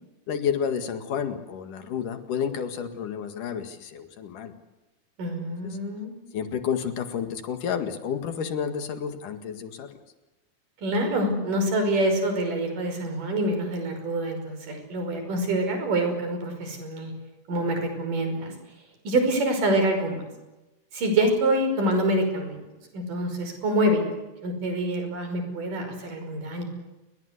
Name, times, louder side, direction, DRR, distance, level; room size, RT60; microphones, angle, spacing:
voice 1, 0.3-4.5 5.6-5.8 6.3-10.0, left 7 dB, 75° left, 8 dB, 3.4 m, -30 dB
voice 2, 5.2-6.1 10.8-17.1 17.5-18.5 19.1-20.2 20.9-22.6 22.9-24.0 24.4-26.6, right 1 dB, 80° right, 6 dB, 7.1 m, -26 dB
28.5 x 23.0 x 8.3 m, 1.0 s
omnidirectional pair, 3.7 m